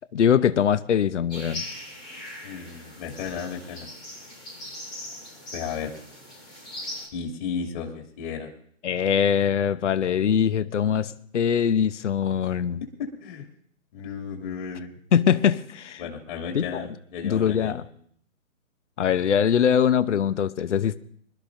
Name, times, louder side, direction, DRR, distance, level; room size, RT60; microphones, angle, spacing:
voice 1, 0.1-1.6 8.8-12.8 15.1-16.0 16.5-16.9 17.2-17.8 19.0-21.0, left 8 dB, 60° left, 0.9 m, -22 dB
sound 1, 1.3-7.1, left 1 dB, 5° left, 0.5 m, -40 dB
voice 2, 2.4-3.9 5.5-5.9 7.1-8.5 13.0-13.4 13.9-14.9 16.0-17.8, left 6 dB, 35° left, 2.7 m, -34 dB
26.0 x 13.0 x 2.7 m
figure-of-eight pair, 140°, 41 cm